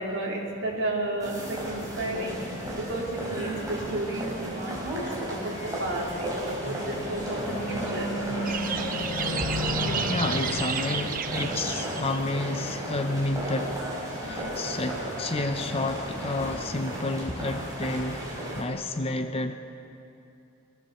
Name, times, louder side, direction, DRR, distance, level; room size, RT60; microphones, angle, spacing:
voice 1, 0.0-2.4 2.7-8.1, right 2 dB, 55° right, 3.8 m, -32 dB
sound 1, 1.2-18.6, equal, 15° right, 4.3 m, -34 dB
sound 2, 6.9-12.3, left 1 dB, 80° left, 3.3 m, -34 dB
sound 3, 8.5-12.2, right 7 dB, 40° right, 0.8 m, -32 dB
voice 2, 10.1-13.9 14.2-18.2 18.6-19.5, left 2 dB, 25° left, 0.7 m, -30 dB
24.5 x 15.5 x 7.1 m
head